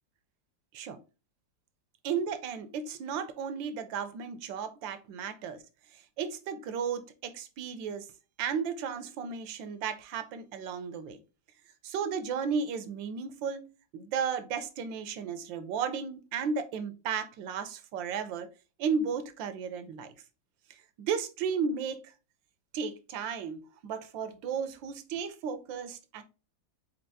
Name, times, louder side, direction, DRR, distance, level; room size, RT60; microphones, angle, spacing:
voice 1, 2.0-5.6 6.2-8.1 8.4-11.2 11.8-13.6 13.9-18.5 18.8-20.1 21.0-22.0 22.7-26.2, right 6 dB, 85° right, 1.4 m, -34 dB
4.4 x 4.1 x 2.6 m
omnidirectional pair, 2.0 m